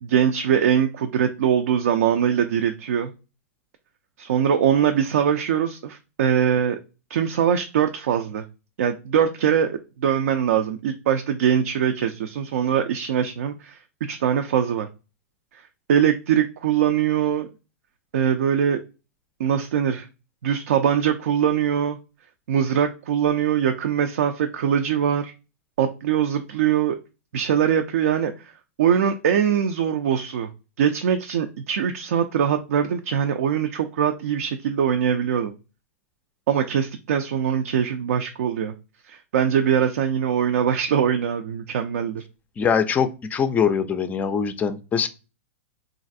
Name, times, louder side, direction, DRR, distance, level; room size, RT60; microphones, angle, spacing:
voice 1, 0.0-3.1 4.2-6.8 7.1-8.4 8.8-14.9 15.5-15.6 15.9-17.5 18.1-18.8 19.4-20.1 20.4-22.0 22.5-25.3 25.8-27.0 27.3-28.5 28.8-30.5 30.8-35.5 36.5-38.7 39.1-42.2, right 8 dB, 70° right, 6 dB, 0.4 m, -22 dB
voice 2, 42.6-45.1, left 7 dB, 20° left, 11 dB, 0.4 m, -22 dB
3.1 x 2.4 x 2.5 m, 0.31 s
hypercardioid pair, 115°, 8 cm